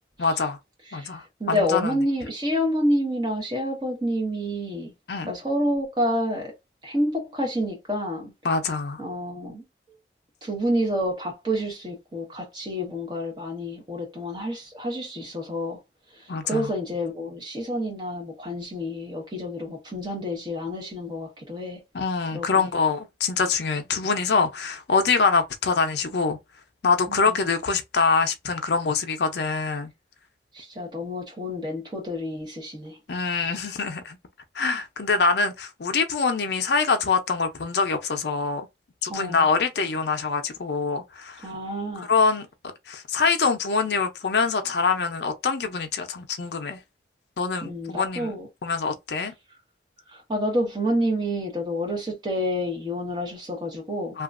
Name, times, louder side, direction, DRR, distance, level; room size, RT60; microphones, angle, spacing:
voice 1, 0.2-0.6 0.9-1.9 5.1-5.3 8.4-9.0 16.3-16.7 21.9-26.4 26.8-29.9 33.1-34.2 34.6-38.6 39.0-41.5 42.0-42.5 42.9-46.8 47.4-48.3 48.6-49.3 54.1-54.2, left 4 dB, 70° left, 0.5 m, -24 dB
voice 2, 1.4-4.9 5.3-6.5 6.8-8.3 9.0-9.6 10.4-15.8 16.4-21.8 22.3-22.7 27.1-27.4 30.5-33.6 39.1-39.5 41.4-42.1 47.6-48.5 50.3-54.2, equal, 25° right, 1.1 m, -28 dB
2.9 x 2.4 x 2.5 m
head